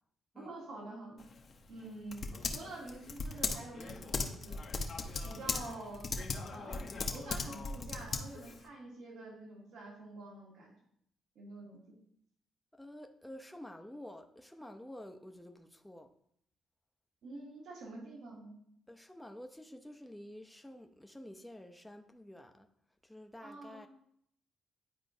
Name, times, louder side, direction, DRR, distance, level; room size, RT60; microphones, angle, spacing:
voice 1, 0.3-1.2 1.7-4.8 5.2-6.1 6.5-6.9 7.1-10.7 11.4-12.0 17.2-18.5 23.4-23.9, right 2 dB, 75° right, -4 dB, 2.2 m, -47 dB
Typing, 1.2-8.6, left 4 dB, 45° left, 0.7 m, -38 dB
voice 2, 12.7-16.1 18.9-22.7 23.0-23.9, left 1 dB, 5° left, 5 dB, 0.6 m, -50 dB
10.0 x 4.4 x 2.7 m, 0.70 s
cardioid pair, 90°, 0 cm